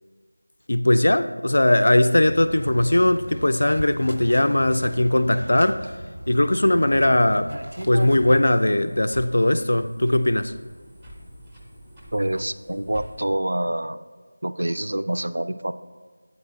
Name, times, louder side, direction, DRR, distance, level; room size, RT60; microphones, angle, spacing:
voice 1, 0.7-5.9 6.3-7.5 7.9-10.5, left 1 dB, 50° left, 0.3 m, -19 dB
sound 1, 2.2-8.6, right 1 dB, 90° right, 0.7 m, -36 dB
sound 2, 7.8-13.3, equal, 5° right, 0.5 m, -45 dB
voice 2, 12.1-14.0 14.4-15.7, right 1 dB, 65° right, 0.3 m, -26 dB
8.6 x 4.0 x 5.8 m
figure-of-eight pair, 180°, 0 cm